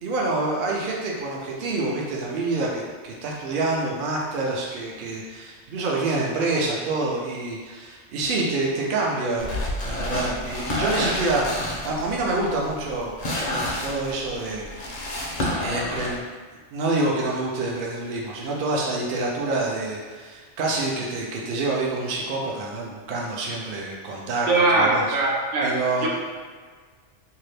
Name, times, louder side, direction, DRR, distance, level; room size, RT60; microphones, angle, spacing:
voice 1, 0.0-9.5 9.8-13.1 13.8-14.7 15.6-16.3 16.7-24.5 24.8-25.2 25.6-26.1, right 2 dB, 55° right, -3 dB, 0.6 m, -27 dB
sound 1, 9.4-16.2, left 1 dB, 50° left, 0.5 m, -29 dB
voice 2, 24.5-25.7 26.0-26.1, right 2 dB, 80° right, -3 dB, 1.0 m, -20 dB
2.7 x 2.3 x 3.2 m, 1.5 s
omnidirectional pair, 1.2 m